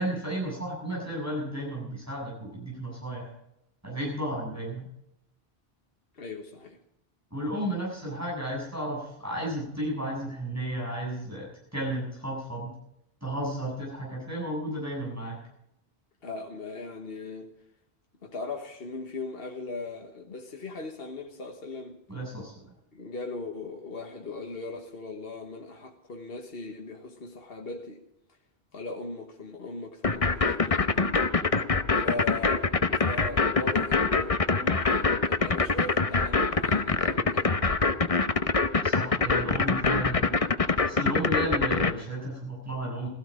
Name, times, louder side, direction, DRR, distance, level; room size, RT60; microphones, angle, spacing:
voice 1, 0.0-3.3 3.8-4.9 7.3-12.7 13.2-15.4 22.1-22.5 38.8-40.3 40.6-43.1, right 1 dB, 15° right, 7.7 m, -33 dB
voice 2, 6.1-6.8 16.2-17.5 18.2-22.0 22.9-28.0 28.7-31.2 31.6-31.7 31.9-37.6, left 3 dB, 65° left, 1.6 m, -39 dB
sound 1, 30.0-41.9, left 4 dB, 35° left, 1.0 m, -24 dB
17.0 x 15.0 x 5.1 m
omnidirectional pair, 1.1 m